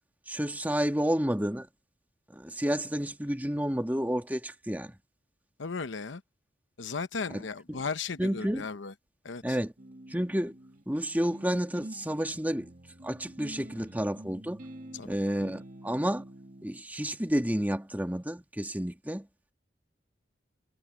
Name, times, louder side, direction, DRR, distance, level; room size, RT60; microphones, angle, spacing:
voice 1, 0.3-1.7 2.3-5.0 7.3-7.4 8.2-8.7 9.4-9.7 10.1-10.5 10.9-12.7 13.0-14.6 15.1-16.2 16.6-19.3, equal, 10° right, 1.8 m, -30 dB
voice 2, 5.6-6.2 6.8-8.9 9.2-9.6 14.9-15.2, left 4 dB, 90° left, 0.8 m, -36 dB
sound 1, 9.8-16.8, right 1 dB, 45° right, 2.0 m, -48 dB
head